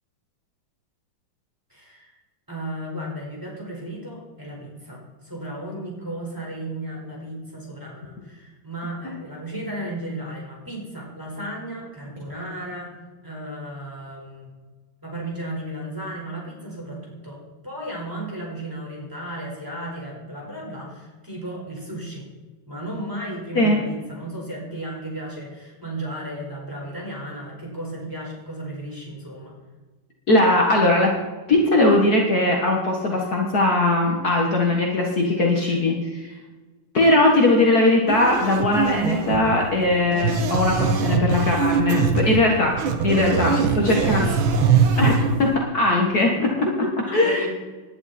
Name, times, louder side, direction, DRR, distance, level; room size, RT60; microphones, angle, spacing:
voice 1, 1.7-2.1 2.5-12.9 13.2-14.5 15.0-22.3 22.7-29.5 35.4-35.8 43.1-44.4 46.6-47.5, right 1 dB, 10° right, -3 dB, 4.8 m, -34 dB
voice 2, 30.3-31.1 31.5-36.3 36.9-43.5 43.8-44.3 45.0-46.5 47.1-47.5, left 2 dB, 50° left, -1 dB, 2.0 m, -20 dB
sound 1, 38.1-45.6, right 5 dB, 70° right, 1.9 m, -22 dB
19.0 x 11.0 x 4.3 m, 1.3 s
omnidirectional pair, 2.3 m